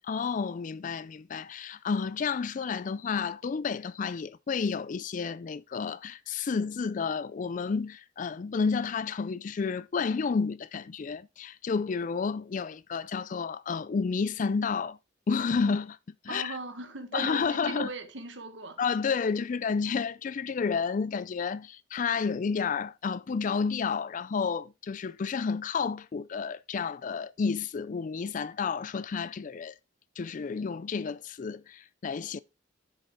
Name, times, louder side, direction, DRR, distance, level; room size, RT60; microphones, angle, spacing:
voice 1, 0.0-15.0 15.3-16.0 16.2-16.6 17.1-17.9 18.8-29.7 30.2-32.4, left 5 dB, 40° left, 0.4 m, -31 dB
voice 2, 16.3-18.8, right 3 dB, 70° right, 1.4 m, -39 dB
7.9 x 6.4 x 3.6 m
head